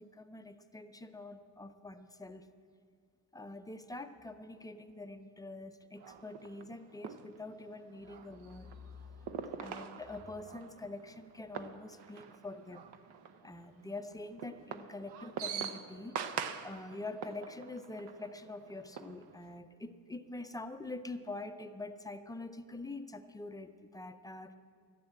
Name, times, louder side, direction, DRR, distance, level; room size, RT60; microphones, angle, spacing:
voice 1, 0.0-2.5 3.3-9.1 9.6-12.8 13.4-24.6, left 2 dB, 10° left, 8 dB, 0.4 m, -45 dB
sound 1, 6.0-19.6, right 7 dB, 85° right, 0.8 m, -45 dB
12.5 x 11.0 x 8.8 m, 2.1 s
cardioid pair, 155°, 38 cm